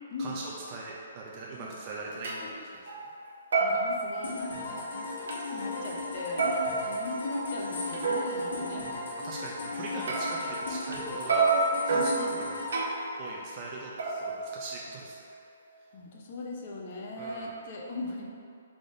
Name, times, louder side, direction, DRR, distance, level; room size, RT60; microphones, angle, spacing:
voice 1, 0.2-3.1 6.9-7.1 9.2-11.5 11.8-12.6 12.9-15.3 15.8-15.9 17.2-17.6, right 3 dB, 30° right, -4 dB, 0.4 m, -42 dB
sound 1, 1.6-1.7 2.2-2.4 2.9-3.2 3.5-4.8 5.3-5.4 6.4-8.4 10.1-11.0 11.3-13.2 14.0-15.1, right 3 dB, 75° right, 0.7 m, -29 dB
voice 2, 2.1-2.6 3.6-6.5 6.9-8.9 9.7-10.0 11.9-12.4 15.9-18.3, left 2 dB, 45° left, -1 dB, 0.6 m, -39 dB
sound 2, 4.2-13.9, left 2 dB, 80° left, 1.4 m, -37 dB
3.8 x 3.5 x 3.7 m, 2.3 s
hypercardioid pair, 165°, 0 cm